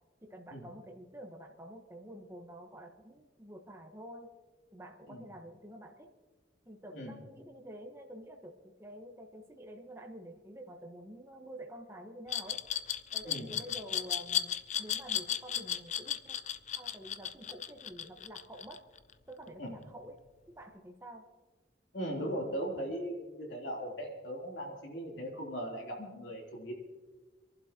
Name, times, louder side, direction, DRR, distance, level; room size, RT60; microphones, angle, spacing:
voice 1, 0.2-4.3 4.7-6.1 6.6-12.6 13.1-16.4 16.7-18.8 19.3-20.2 20.5-21.3, equal, 15° right, 2 dB, 1.2 m, -48 dB
Glass, 12.3-19.1, left 9 dB, 40° left, 0.5 m, -34 dB
voice 2, 21.9-26.8, equal, 85° left, -1 dB, 3.4 m, -39 dB
28.0 x 11.5 x 3.0 m, 1.3 s
head